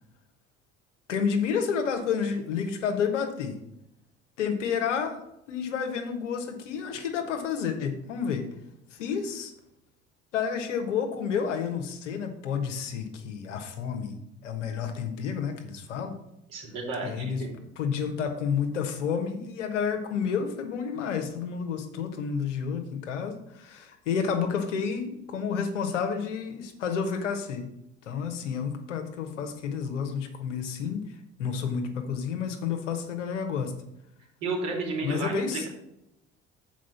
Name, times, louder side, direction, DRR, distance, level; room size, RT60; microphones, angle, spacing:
voice 1, 1.1-3.6 4.4-5.2 5.5-8.5 8.9-9.5 10.3-14.1 14.4-16.2 17.0-17.4 17.8-27.7 28.0-31.0 31.4-33.7 35.0-35.7, left 6 dB, 75° left, 5 dB, 1.2 m, -30 dB
voice 2, 16.5-17.5 34.4-35.7, right 3 dB, 60° right, -1 dB, 3.1 m, -32 dB
7.7 x 4.9 x 7.0 m, 0.84 s
figure-of-eight pair, 55°, 36 cm